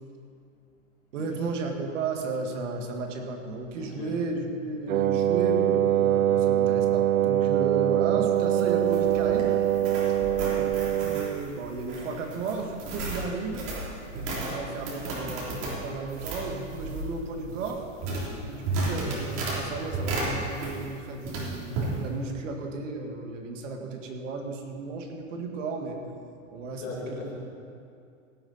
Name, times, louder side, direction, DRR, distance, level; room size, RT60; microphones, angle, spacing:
voice 1, 1.1-9.6 10.5-13.7 14.2-17.8 18.4-26.0 26.5-26.8 27.1-27.2, right 3 dB, 65° right, 3 dB, 2.0 m, -34 dB
voice 2, 3.8-4.1 10.2-10.5 26.7-27.4, left 4 dB, 35° left, -3 dB, 2.3 m, -40 dB
Wind instrument woodwind instrument, 4.9-11.5, right 11 dB, 90° right, 0.5 m, -23 dB
sound 1, 8.3-21.0 21.2-21.9, right 2 dB, 40° right, 3.3 m, -34 dB
16.5 x 9.1 x 4.2 m, 2.4 s
hypercardioid pair, 135°, 40 cm